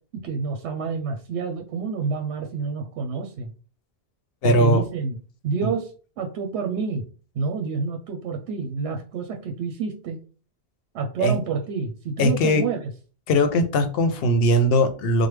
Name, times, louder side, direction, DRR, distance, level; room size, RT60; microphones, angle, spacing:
voice 1, 0.2-3.5 4.4-5.2 5.4-5.9 6.2-7.0 7.3-10.2 10.9-12.8, right 5 dB, 80° right, 3 dB, 0.8 m, -28 dB
voice 2, 4.4-4.8 5.6-5.7 11.2-11.3 12.2-12.7 13.3-15.3, equal, 65° left, 8 dB, 0.7 m, -20 dB
3.2 x 2.1 x 3.1 m, 0.37 s
omnidirectional pair, 1.1 m